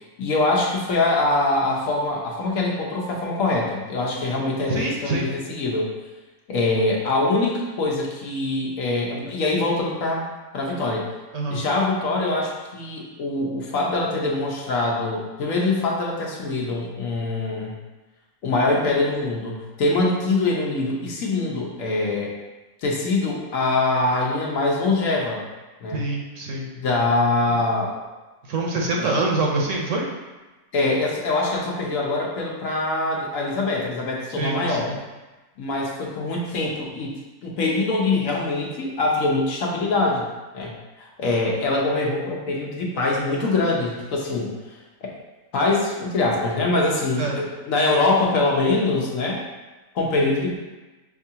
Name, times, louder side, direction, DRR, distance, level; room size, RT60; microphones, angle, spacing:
voice 1, 0.2-5.9 6.5-10.3 10.5-11.0 11.5-17.8 18.4-22.3 22.8-25.4 25.8-26.0 26.8-28.0 30.7-34.9 35.6-37.1 37.4-40.3 40.5-40.7 41.0-44.5 45.0-45.1 45.5-49.4 49.9-50.6, left 2 dB, 65° left, -2 dB, 1.1 m, -23 dB
voice 2, 4.7-5.3 11.3-11.6 25.9-26.7 28.5-30.0 34.3-35.0 47.2-47.4 50.2-50.4, right 2 dB, 65° right, -1 dB, 0.9 m, -25 dB
6.2 x 2.4 x 2.8 m, 1.2 s
omnidirectional pair, 1.5 m